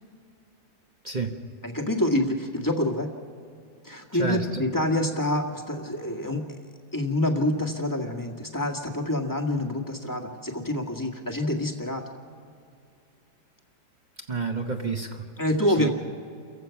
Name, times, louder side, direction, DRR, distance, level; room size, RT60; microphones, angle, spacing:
voice 1, 1.0-1.4 4.1-4.6 14.3-15.3 15.8-15.9, right 4 dB, 30° right, 3 dB, 1.0 m, -29 dB
voice 2, 1.6-3.1 3.8-6.4 6.9-12.0 15.4-15.9, left 1 dB, 10° left, 1 dB, 1.6 m, -27 dB
29.5 x 15.5 x 5.9 m, 2.5 s
omnidirectional pair, 2.0 m